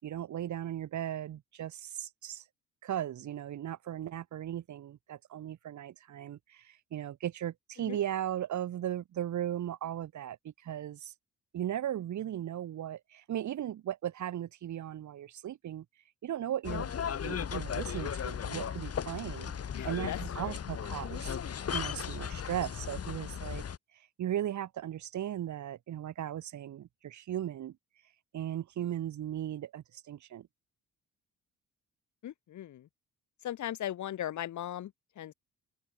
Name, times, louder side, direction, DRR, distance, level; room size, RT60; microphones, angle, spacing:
voice 1, 0.0-2.4 2.8-11.1 11.5-15.9 16.2-16.9 17.2-19.5 19.8-21.4 21.7-23.6 24.2-27.8 28.3-30.5, right 11 dB, 70° right, 5.5 m, -37 dB
sound 1, 16.6-23.8, left 8 dB, 50° left, 7.1 m, -36 dB
voice 2, 19.7-20.6 32.2-32.9 33.4-35.3, left 12 dB, 70° left, 3.4 m, -38 dB
open air
cardioid pair, 90°, 30 cm